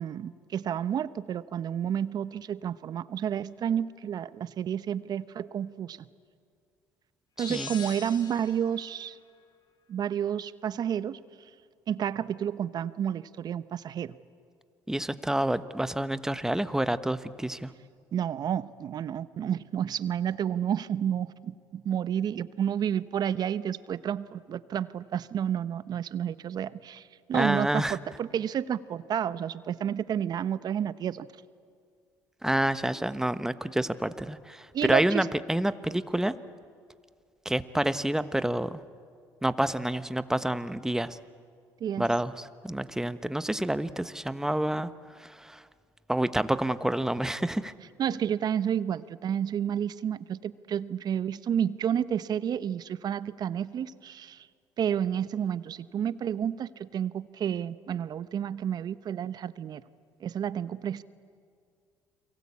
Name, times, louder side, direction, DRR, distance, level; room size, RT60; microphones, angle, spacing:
voice 1, 0.0-6.0 7.4-9.2 9.9-11.2 11.9-14.1 18.1-31.3 34.7-35.3 41.8-42.1 48.0-54.5 54.8-59.8 60.2-61.0, right 9 dB, 55° right, 15 dB, 0.9 m, -30 dB
sound 1, 7.4-8.8, left 6 dB, 55° left, 3.3 m, -41 dB
voice 2, 14.9-17.7 27.3-28.0 32.4-36.4 37.4-38.8 39.4-41.2 42.0-45.6 46.1-47.7, right 1 dB, 5° right, 12 dB, 1.2 m, -28 dB
30.0 x 23.0 x 8.6 m, 2.2 s
supercardioid pair, 65°, 8 cm